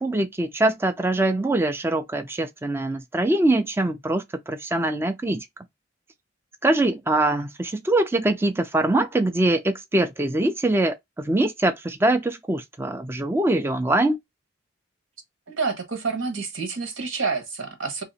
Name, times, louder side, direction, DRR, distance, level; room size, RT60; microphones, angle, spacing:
voice 1, 0.0-5.5 6.6-14.2, right 2 dB, 10° right, 0.3 m, -23 dB
voice 2, 15.5-18.0, right 4 dB, 90° right, 1.3 m, -28 dB
2.8 x 2.8 x 4.0 m
head